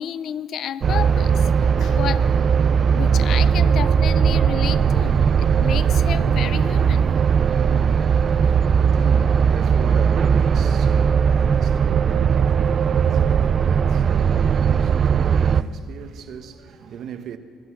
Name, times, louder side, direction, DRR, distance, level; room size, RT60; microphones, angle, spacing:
voice 1, 0.0-2.3 2.9-7.2, left 9 dB, 60° left, 0.5 m, -31 dB
sound 1, 0.8-15.6, right 7 dB, 40° right, 0.4 m, -18 dB
voice 2, 8.1-17.4, right 8 dB, 60° right, 1.0 m, -38 dB
23.5 x 8.2 x 7.2 m
cardioid pair, 120°, 0 cm